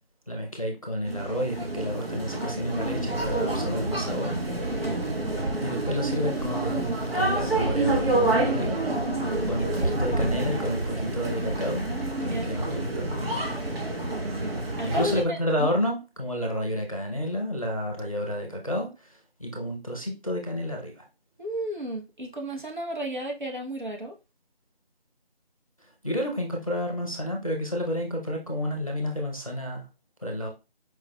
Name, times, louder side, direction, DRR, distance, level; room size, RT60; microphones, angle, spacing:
voice 1, 0.3-4.8 5.6-8.8 9.4-11.8 12.2-13.1 14.8-19.1 19.4-21.0 26.0-29.8 30.2-30.5, equal, 35° left, 0.7 m, -30 dB
sound 1, 1.1-15.2, right 2 dB, 70° right, 1.2 m, -28 dB
voice 2, 9.2-10.0 12.2-12.5 14.3-15.7 21.4-24.1, equal, 50° right, 0.9 m, -34 dB
4.7 x 3.0 x 2.2 m
figure-of-eight pair, 180°, 31 cm